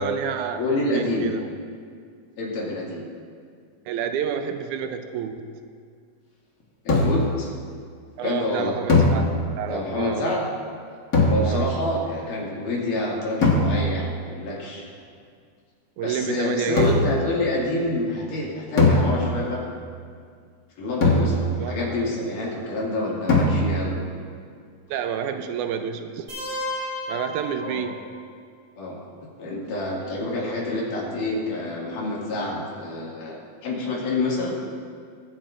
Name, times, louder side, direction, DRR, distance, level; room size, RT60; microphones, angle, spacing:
voice 1, 0.0-1.5 3.9-5.6 8.2-9.3 9.6-10.2 11.4-11.7 16.0-17.1 21.6-22.1 24.9-26.3 27.1-28.0, right 8 dB, 80° right, 8 dB, 2.0 m, -29 dB
voice 2, 0.6-1.3 2.4-3.0 6.9-7.5 8.2-8.8 9.7-10.5 11.3-14.9 16.0-19.6 20.8-24.0 27.6-27.9 28.8-29.0 29.4-34.5, left 2 dB, 85° left, -4 dB, 3.7 m, -27 dB
sound 1, 6.9-7.4 8.9-9.8 11.1-11.9 13.4-14.1 16.8-17.3 18.8-19.6 21.0-21.8 23.3-24.0, left 2 dB, 50° left, 1.0 m, -21 dB
sound 2, 26.3-28.2, left 1 dB, 55° right, 4.1 m, -33 dB
23.0 x 8.9 x 2.5 m, 2.1 s
omnidirectional pair, 3.6 m